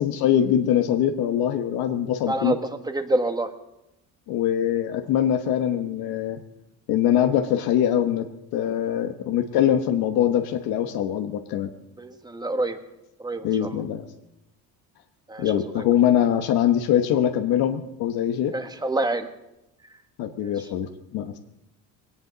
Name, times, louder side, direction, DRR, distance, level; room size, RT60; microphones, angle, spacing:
voice 1, 0.0-2.5 4.3-6.4 6.9-8.3 8.5-11.7 13.4-14.0 15.4-18.5 20.2-21.4, left 10 dB, 80° left, 6 dB, 1.1 m, -23 dB
voice 2, 2.3-2.6 2.9-3.5 12.0-12.8 13.2-13.8 15.3-15.8 18.5-19.3 20.4-20.5, right 2 dB, 10° right, 8 dB, 1.4 m, -27 dB
20.5 x 17.5 x 4.0 m, 0.87 s
cardioid pair, 120°, 36 cm